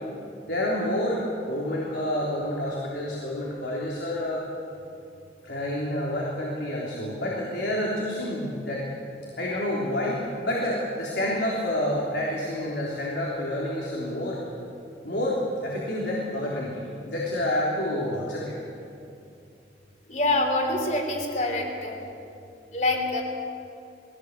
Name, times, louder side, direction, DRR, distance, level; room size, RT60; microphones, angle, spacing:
voice 1, 0.5-4.4 5.4-8.8 9.4-14.4 15.0-16.8 17.1-18.5, left 1 dB, 75° left, -5 dB, 3.5 m, -28 dB
voice 2, 20.1-22.0 22.7-23.2, left 2 dB, 40° left, 2 dB, 3.3 m, -25 dB
21.0 x 17.5 x 8.2 m, 2.7 s
head